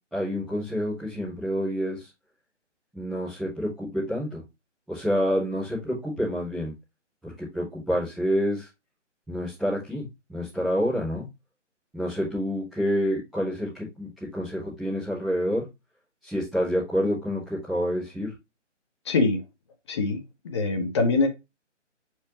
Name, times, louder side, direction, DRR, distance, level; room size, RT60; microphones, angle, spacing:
voice 1, 0.1-2.0 2.9-4.4 4.9-6.7 7.2-8.7 9.3-11.2 11.9-15.6 16.2-18.3, equal, ahead, -14 dB, 0.7 m, -28 dB
voice 2, 19.1-19.4 19.9-21.3, left 3 dB, 25° left, 5 dB, 1.1 m, -24 dB
7.0 x 4.7 x 2.9 m, 0.23 s
figure-of-eight pair, 145°, 37 cm